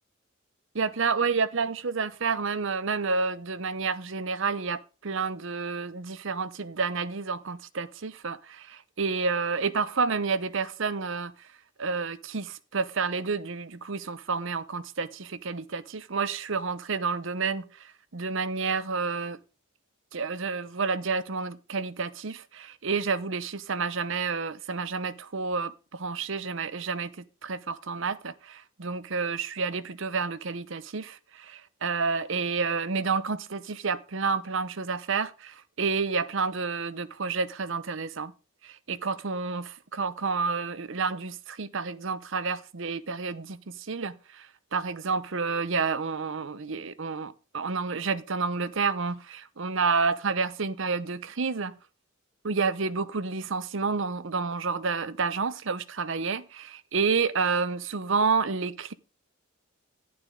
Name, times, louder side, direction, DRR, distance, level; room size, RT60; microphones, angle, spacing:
voice 1, 0.7-11.3 11.8-19.4 20.1-27.1 27.4-38.3 38.6-44.5 44.7-51.8 52.4-58.9, right 4 dB, 65° right, 0.8 m, -30 dB
11.5 x 11.5 x 3.7 m
head